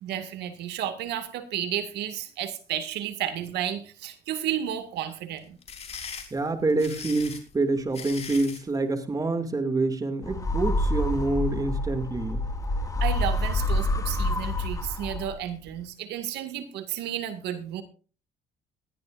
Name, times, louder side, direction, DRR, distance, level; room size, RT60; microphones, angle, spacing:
voice 1, 0.0-5.6 13.0-17.8, right 10 dB, 80° right, 8 dB, 2.1 m, -32 dB
sound 1, 5.4-8.7, left 6 dB, 40° left, 3.9 m, -40 dB
voice 2, 6.3-12.4, right 2 dB, 20° right, 7 dB, 2.5 m, -27 dB
sound 2, 10.2-15.5, left 1 dB, 20° left, 2.1 m, -27 dB
20.0 x 14.0 x 2.6 m, 0.36 s
cardioid pair, 110°, 17 cm